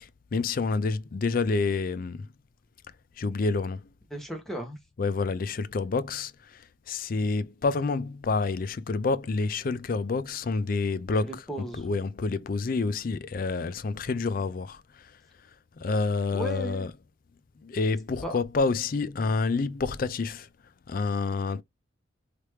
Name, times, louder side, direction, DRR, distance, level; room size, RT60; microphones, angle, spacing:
voice 1, 0.0-2.3 3.2-3.9 5.0-11.4 11.8-14.8 15.8-16.9 17.6-20.5 20.9-21.6, left 4 dB, 45° left, 0.4 m, -28 dB
voice 2, 4.1-4.8 11.2-11.9 16.3-16.9 18.2-18.3, right 1 dB, ahead, 1.1 m, -35 dB
3.3 x 2.9 x 3.1 m
head